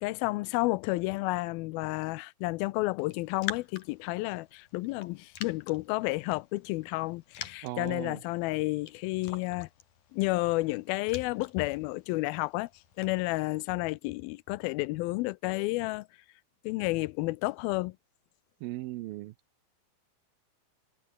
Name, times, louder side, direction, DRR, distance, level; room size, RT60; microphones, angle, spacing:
voice 1, 0.0-9.7 10.1-12.7 13.0-16.1 16.6-18.0, left 21 dB, 85° left, 2.4 m, -31 dB
Raindrop, 3.0-13.7, left 9 dB, 60° left, 3.5 m, -47 dB
voice 2, 7.6-8.2 18.6-19.3, right 17 dB, 80° right, 2.5 m, -37 dB
omnidirectional pair, 4.3 m